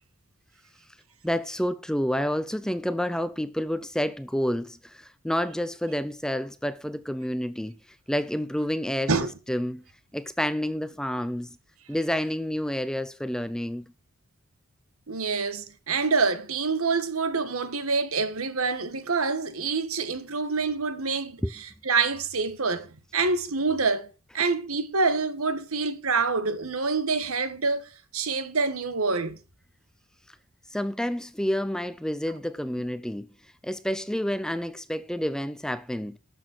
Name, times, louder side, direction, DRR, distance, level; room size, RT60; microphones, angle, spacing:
voice 1, 1.2-7.8 8.1-9.1 9.5-9.8 10.1-11.6 11.9-13.9 21.4-21.5 30.7-33.3 33.6-36.2, equal, 5° left, 0.5 m, -29 dB
voice 2, 15.1-22.9 23.1-24.1 24.3-29.4, right 4 dB, 85° right, 1.5 m, -26 dB
12.5 x 7.1 x 6.1 m
head